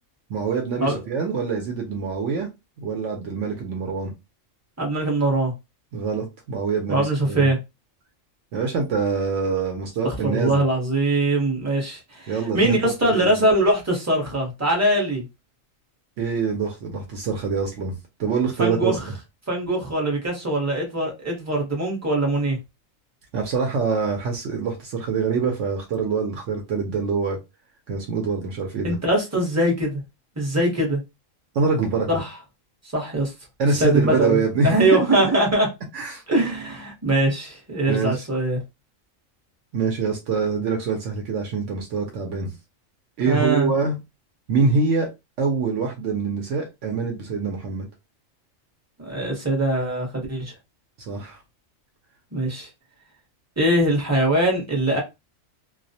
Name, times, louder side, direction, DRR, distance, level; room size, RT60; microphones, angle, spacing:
voice 1, 0.3-2.5 2.8-4.1 5.9-7.5 8.5-10.6 12.3-13.3 16.2-19.0 23.3-27.4 27.9-29.0 31.5-32.1 33.6-35.0 35.9-36.2 37.9-38.2 39.7-42.5 43.2-44.0 44.5-45.1 45.4-47.9 51.0-51.4, right 5 dB, 70° right, 0.8 m, -25 dB
voice 2, 4.8-5.5 6.9-7.6 10.0-15.2 18.6-19.1 19.5-22.6 28.8-30.0 30.4-31.0 32.1-32.3 32.9-33.3 33.8-35.7 36.3-38.6 43.3-43.7 49.0-50.5 52.3-52.7 53.6-55.0, right 1 dB, 15° right, 0.6 m, -22 dB
2.3 x 2.0 x 2.6 m
omnidirectional pair, 1.4 m